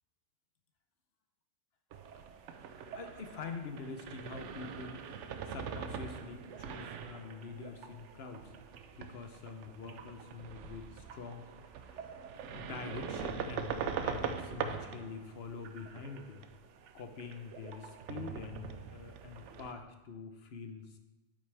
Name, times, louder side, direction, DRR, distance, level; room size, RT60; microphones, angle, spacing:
sound 1, 1.9-19.7, right 6 dB, 80° right, 0.9 m, -43 dB
voice 1, 2.9-8.5 9.0-11.4 11.7-12.2 12.5-16.5 16.9-21.0, left 5 dB, 60° left, 6 dB, 1.1 m, -45 dB
8.9 x 8.5 x 3.4 m, 1.0 s
omnidirectional pair, 1.2 m